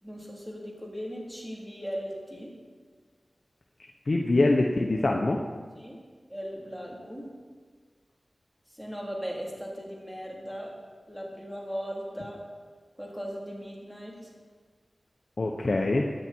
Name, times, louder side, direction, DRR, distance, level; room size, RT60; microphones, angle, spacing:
voice 1, 0.0-2.6 5.8-6.0 6.3-7.3 8.7-10.8 11.1-12.4 13.0-14.3, equal, 5° right, -3 dB, 3.8 m, -38 dB
voice 2, 4.1-5.4 15.4-16.1, left 2 dB, 60° left, 1 dB, 1.0 m, -24 dB
17.0 x 10.5 x 4.6 m, 1.5 s
wide cardioid pair, 55°, 0 cm